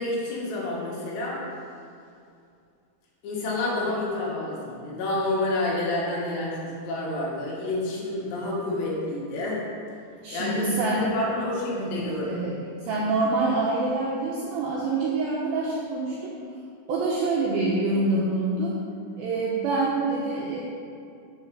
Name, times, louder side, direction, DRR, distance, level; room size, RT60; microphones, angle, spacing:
voice 1, 0.0-1.4 3.2-9.6 10.3-12.4, left 2 dB, 75° left, -4 dB, 3.5 m, -29 dB
voice 2, 10.2-11.0 11.7-16.3 16.9-18.8 19.2-20.6, right 3 dB, 80° right, -5 dB, 2.1 m, -26 dB
7.1 x 5.6 x 6.2 m, 2.4 s
omnidirectional pair, 5.2 m